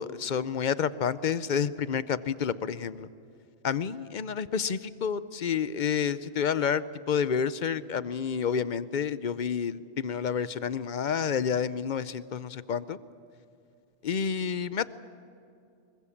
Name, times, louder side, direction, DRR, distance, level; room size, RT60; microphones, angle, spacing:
voice 1, 0.0-3.1 3.6-13.0 14.0-14.9, left 7 dB, 50° left, 16 dB, 0.7 m, -29 dB
25.0 x 22.5 x 7.3 m, 2.6 s
omnidirectional pair, 1.1 m